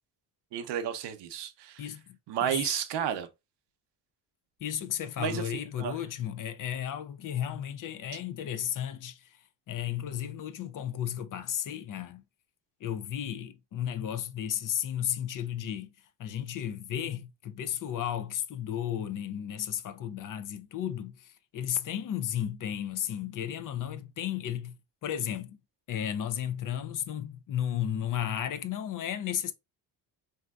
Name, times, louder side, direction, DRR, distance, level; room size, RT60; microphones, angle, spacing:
voice 1, 0.5-1.9 2.3-3.3 5.2-5.4 5.8-6.0, right 9 dB, 75° right, 0.7 m, -32 dB
voice 2, 1.8-2.7 4.6-9.2 9.7-12.2 12.8-15.9 16.2-24.8 25.0-25.6 25.9-29.5, left 10 dB, 50° left, 0.5 m, -34 dB
3.3 x 2.7 x 2.3 m
cardioid pair, 95°, 42 cm